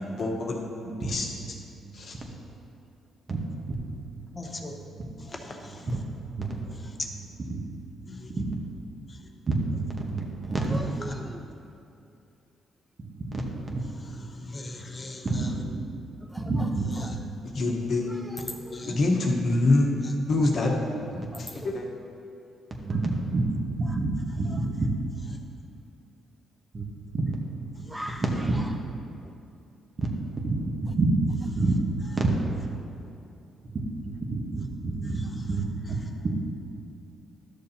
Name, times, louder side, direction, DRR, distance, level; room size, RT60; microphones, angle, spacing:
voice 1, 0.0-0.7 1.0-1.6 1.9-2.2 17.5-18.0 18.9-19.9 20.3-20.8 21.1-21.9, left 2 dB, 55° left, -1 dB, 1.2 m, -25 dB
voice 2, 3.3-3.8 4.2-5.0 5.8-6.0 6.4-6.6 7.1-7.2 7.5-7.6 8.4-8.5 9.5-10.8 13.0-13.8 15.2-15.3 15.7-15.9 16.4-17.2 18.8-19.0 19.5-19.6 22.8-24.9 26.7-26.9 27.1-28.0 30.0-30.1 30.4-31.9 32.1-32.3 33.7-35.6 35.9-36.0 36.2-36.4, right 3 dB, 40° right, 0 dB, 1.2 m, -29 dB
voice 3, 4.4-4.7 5.4-6.0 6.8-7.1 8.1-8.3 14.3-15.5 18.4-18.9 27.9-28.2, left 3 dB, 30° left, 2 dB, 0.9 m, -40 dB
voice 4, 18.1-18.8 21.3-21.7 27.9-28.2, equal, 5° right, 5 dB, 0.3 m, -39 dB
12.0 x 6.7 x 2.9 m, 2.7 s
cardioid pair, 90°, 0 cm